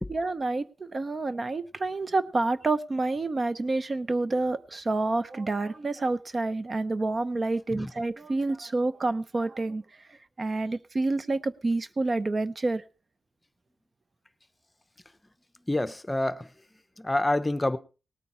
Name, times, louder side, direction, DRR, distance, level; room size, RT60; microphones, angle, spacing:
voice 1, 0.1-9.8 10.1-12.8, right 2 dB, 40° right, 0.6 m, -28 dB
voice 2, 15.7-16.5 17.0-17.8, left 1 dB, 15° left, 0.7 m, -27 dB
18.5 x 9.1 x 4.3 m
wide cardioid pair, 100°, 0 cm